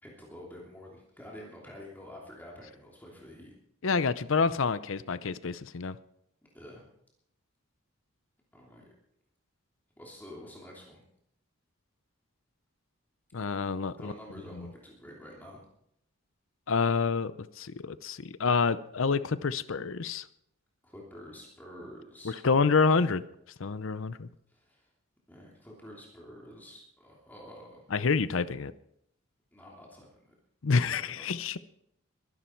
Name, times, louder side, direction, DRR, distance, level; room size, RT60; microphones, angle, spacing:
voice 1, 0.0-3.5 6.5-6.8 8.5-8.8 10.0-11.0 14.0-15.6 20.8-22.4 24.5-24.9 25.3-27.8 29.5-30.3 30.7-31.4, equal, 10° left, -3 dB, 2.9 m, -48 dB
voice 2, 3.8-6.0 13.3-14.1 16.7-20.2 22.4-23.2 23.6-24.3 27.9-28.7 30.6-31.6, left 4 dB, 65° left, 15 dB, 0.6 m, -28 dB
22.0 x 11.5 x 4.5 m, 0.74 s
head